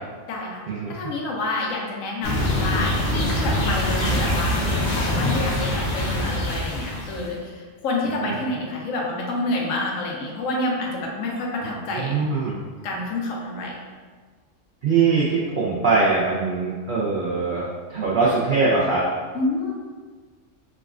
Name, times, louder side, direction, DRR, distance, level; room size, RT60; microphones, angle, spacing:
voice 1, 0.3-0.6 0.9-12.2 12.8-13.8 19.3-19.7, left 2 dB, 85° left, -2 dB, 1.0 m, -28 dB
sound 1, 2.2-7.3, left 1 dB, 50° left, 0.9 m, -24 dB
voice 2, 11.9-12.6 14.8-19.1, right 4 dB, 55° right, -6 dB, 0.6 m, -22 dB
4.7 x 2.3 x 2.4 m, 1.5 s
omnidirectional pair, 1.3 m